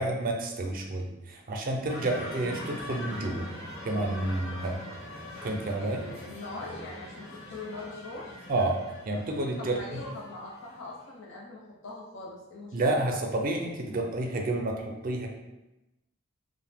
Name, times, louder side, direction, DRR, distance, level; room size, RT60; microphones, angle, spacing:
voice 1, 0.0-3.5 3.8-4.8 5.4-6.0 8.5-8.8 9.1-10.0 12.7-15.3, right 2 dB, 45° right, 2 dB, 0.4 m, -30 dB
sound 1, 1.9-10.9, left 1 dB, 85° left, 1.1 m, -42 dB
voice 2, 5.8-8.3 9.6-13.0, left 2 dB, 65° left, -3 dB, 0.6 m, -42 dB
2.6 x 2.1 x 3.3 m, 0.98 s
head